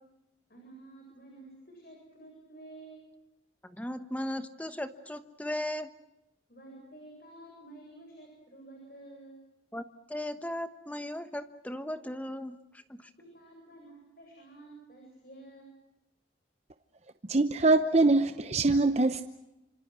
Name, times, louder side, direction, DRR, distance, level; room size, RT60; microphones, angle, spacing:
voice 1, 0.5-3.1 6.5-9.4 13.2-15.8, right 2 dB, 50° left, 0 dB, 7.8 m, -51 dB
voice 2, 3.6-5.9 9.7-9.8 10.1-12.6 12.9-13.1, left 1 dB, 10° left, 10 dB, 1.1 m, -36 dB
voice 3, 17.3-19.2, right 3 dB, 35° right, 9 dB, 0.8 m, -23 dB
28.0 x 26.5 x 6.2 m, 0.90 s
head